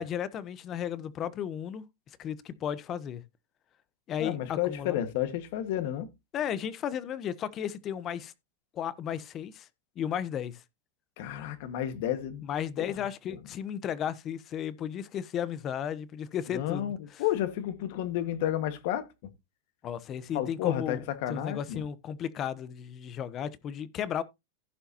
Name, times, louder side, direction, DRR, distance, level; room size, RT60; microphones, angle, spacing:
voice 1, 0.0-1.8 2.2-3.2 4.1-5.0 6.3-8.3 8.7-9.7 10.0-10.6 12.4-17.2 19.8-21.0 21.3-24.2, left 9 dB, 30° left, 0.9 m, -34 dB
voice 2, 4.2-6.1 11.2-12.4 12.8-12.9 13.3-13.4 16.5-19.1 20.3-21.8, left 12 dB, 60° left, 1.5 m, -31 dB
15.5 x 5.7 x 2.8 m
supercardioid pair, 140°, 0 cm